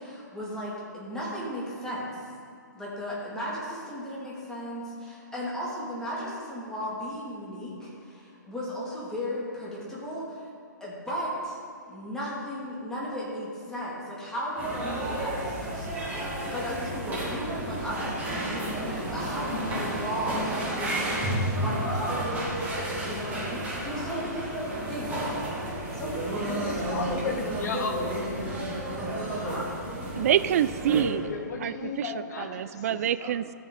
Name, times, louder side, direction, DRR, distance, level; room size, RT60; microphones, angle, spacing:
voice 1, 0.0-2.3 2.7-10.5 10.8-11.6 11.9-16.1 16.4-22.3 22.8-25.2 25.9-26.9 29.4-29.7, equal, 5° left, -7 dB, 2.9 m, -36 dB
sound 1, 14.6-31.0, right 1 dB, 15° right, 2.8 m, -31 dB
voice 2, 26.6-28.2 30.9-32.9 33.2-33.3, left 5 dB, 60° left, 2 dB, 1.7 m, -35 dB
voice 3, 30.1-31.3 31.6-33.5, right 10 dB, 50° right, 15 dB, 0.4 m, -26 dB
14.0 x 7.3 x 4.1 m, 2.5 s
figure-of-eight pair, 130°, 10 cm